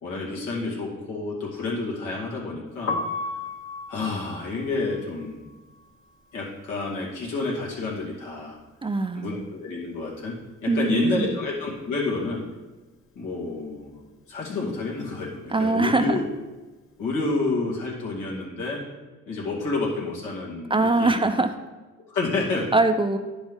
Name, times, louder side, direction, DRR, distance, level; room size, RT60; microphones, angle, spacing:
voice 1, 0.0-3.0 3.9-5.5 6.3-8.6 9.1-10.3 10.6-12.4 13.1-14.0 14.3-16.3 17.0-18.8 19.3-21.2 22.1-22.7, left 3 dB, 90° left, -4 dB, 2.4 m, -29 dB
Piano, 2.7-8.7 8.9-10.5 10.8-17.2, left 3 dB, 45° left, 1.0 m, -37 dB
voice 2, 8.8-9.4 10.7-11.3 15.5-16.2 20.7-21.5 22.7-23.2, right 2 dB, 15° right, 8 dB, 0.5 m, -22 dB
10.0 x 5.2 x 3.7 m, 1.2 s
cardioid pair, 90°, 30 cm